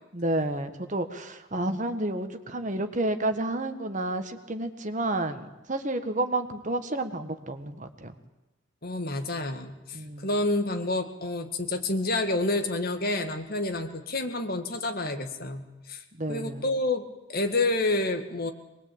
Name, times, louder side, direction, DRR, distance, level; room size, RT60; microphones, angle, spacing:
voice 1, 0.1-8.1 9.9-10.3 16.1-16.7, right 2 dB, 35° right, 8 dB, 1.5 m, -30 dB
voice 2, 8.8-16.0 16.3-17.0 17.3-18.5, left 2 dB, 45° left, 6 dB, 2.0 m, -29 dB
24.0 x 21.0 x 8.8 m, 0.96 s
head